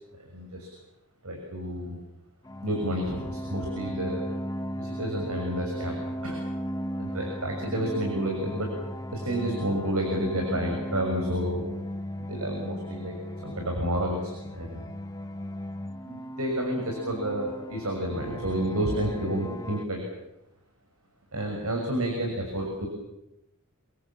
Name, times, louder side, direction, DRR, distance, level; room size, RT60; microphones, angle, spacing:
voice 1, 0.2-0.7 1.2-2.0 2.6-4.3 4.8-5.9 6.2-6.4 7.0-8.7 9.1-11.6 12.2-13.1 13.4-14.9 16.0-20.0 21.3-22.9, right 1 dB, 75° right, 2 dB, 6.6 m, -30 dB
sound 1, 2.4-19.9, equal, 15° left, 1.1 m, -36 dB
28.0 x 23.0 x 7.5 m, 0.89 s
head